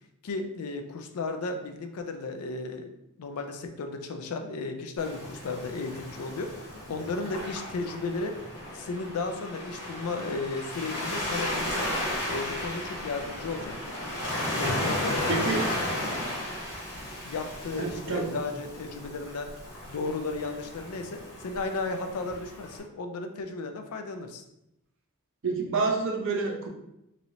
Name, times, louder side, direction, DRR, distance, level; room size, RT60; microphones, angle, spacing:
voice 1, 0.2-8.4 8.7-11.9 12.3-14.0 14.5-15.8 17.2-19.5 19.9-24.4, left 3 dB, 80° left, 6 dB, 0.4 m, -34 dB
Waves surf, 5.0-22.8, left 1 dB, 65° left, 1.1 m, -34 dB
voice 2, 15.3-15.6 17.7-18.3 25.4-26.7, right 4 dB, 55° right, 1 dB, 0.5 m, -28 dB
3.0 x 2.7 x 2.6 m, 0.84 s
head